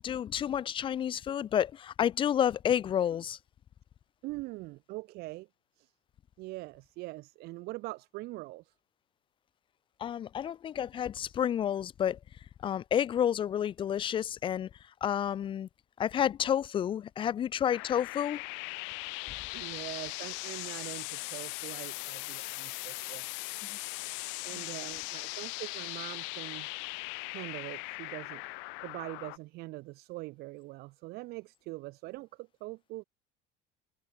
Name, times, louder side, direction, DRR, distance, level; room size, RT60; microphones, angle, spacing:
voice 1, 0.0-3.4 10.0-12.2 12.6-14.7 15.0-15.7 16.0-18.4 23.7-23.8 24.5-24.6, left 9 dB, 25° left, 0.5 m, -30 dB
voice 2, 4.2-5.5 5.8-5.9 6.4-8.7 19.5-23.3 24.4-26.7 27.3-28.4 28.8-33.0, right 21 dB, 60° right, 0.7 m, -43 dB
sound 1, 17.7-29.4, left 34 dB, 85° left, 1.6 m, -39 dB
cardioid pair, 165°, 19 cm